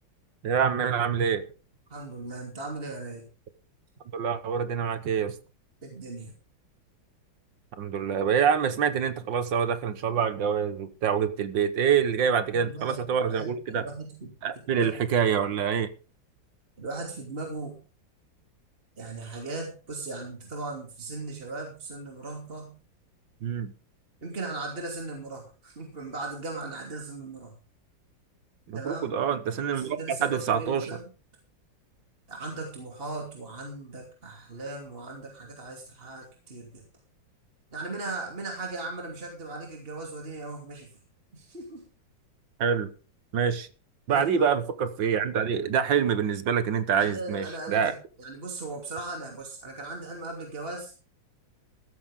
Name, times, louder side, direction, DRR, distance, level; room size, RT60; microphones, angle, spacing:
voice 1, 0.4-1.4 4.1-5.3 7.8-13.8 14.4-15.9 23.4-23.7 28.7-30.9 42.6-42.9 43.3-43.7 44.1-47.9, right 7 dB, 75° right, 12 dB, 1.9 m, -26 dB
voice 2, 1.9-3.2 5.8-6.3 12.5-13.0 13.3-14.3 14.7-15.1 16.8-17.8 19.0-22.7 24.2-27.5 28.7-29.1 29.7-31.1 32.3-36.8 37.7-40.9 41.3-41.8 44.1-44.6 46.9-50.9, right 3 dB, 30° right, 1 dB, 3.1 m, -38 dB
14.5 x 13.5 x 3.7 m, 0.35 s
omnidirectional pair, 2.1 m